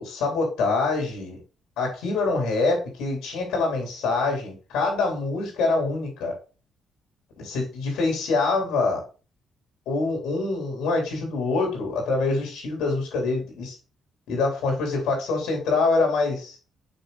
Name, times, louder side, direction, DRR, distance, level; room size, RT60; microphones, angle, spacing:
voice 1, 0.0-1.4 1.8-6.4 7.4-9.0 9.8-13.8 14.3-16.6, left 3 dB, 90° left, 2 dB, 3.4 m, -25 dB
6.3 x 6.2 x 2.4 m, 0.34 s
cardioid pair, 90°, 0 cm